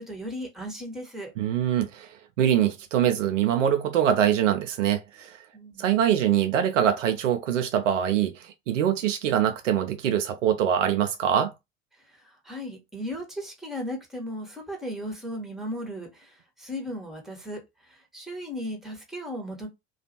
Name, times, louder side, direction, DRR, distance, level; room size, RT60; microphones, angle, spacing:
voice 1, 0.0-1.3 5.5-5.9 12.1-19.7, equal, ahead, 1.0 m, -36 dB
voice 2, 1.4-5.4 5.8-11.5, right 10 dB, 70° right, 0.5 m, -24 dB
2.4 x 2.3 x 2.7 m
figure-of-eight pair, 65°, 38 cm